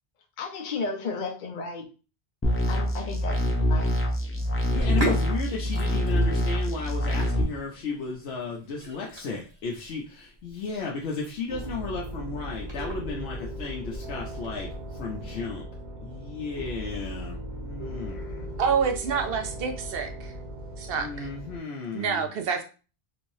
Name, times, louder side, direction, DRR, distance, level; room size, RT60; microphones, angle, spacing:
voice 1, 0.4-1.8 2.7-3.4 3.7-4.3, left 4 dB, 55° left, 0.7 m, -34 dB
sound 1, 2.4-7.4, left 1 dB, 20° left, 0.4 m, -25 dB
Sink (filling or washing), 4.6-15.4, right 1 dB, 25° right, 1.2 m, -38 dB
voice 2, 4.7-15.6 16.0-18.5 20.9-22.3, left 4 dB, 85° left, 0.9 m, -34 dB
sound 2, 11.5-21.6, right 1 dB, 45° right, 1.2 m, -38 dB
voice 3, 18.6-20.3 20.8-21.3 21.9-22.6, right 6 dB, 65° right, 0.8 m, -27 dB
3.3 x 3.1 x 2.6 m
omnidirectional pair, 1.1 m